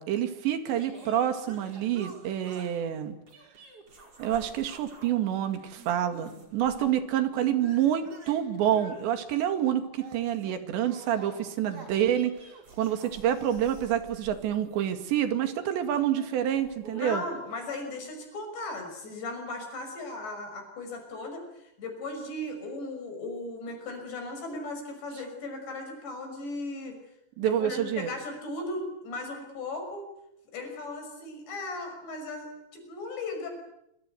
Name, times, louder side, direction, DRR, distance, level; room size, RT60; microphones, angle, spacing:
voice 1, 0.0-3.2 4.2-12.3 12.8-17.2 27.4-28.1, right 10 dB, 75° right, 8 dB, 4.4 m, -27 dB
sound 1, 0.7-2.8 3.3-5.2 5.4-7.0 7.3-15.3 16.1-17.5, right 3 dB, 35° right, 5.7 m, -48 dB
voice 2, 16.9-27.0 27.4-30.1 30.5-33.5, left 2 dB, 70° left, 5 dB, 8.1 m, -37 dB
27.5 x 26.0 x 8.0 m, 0.82 s
omnidirectional pair, 5.1 m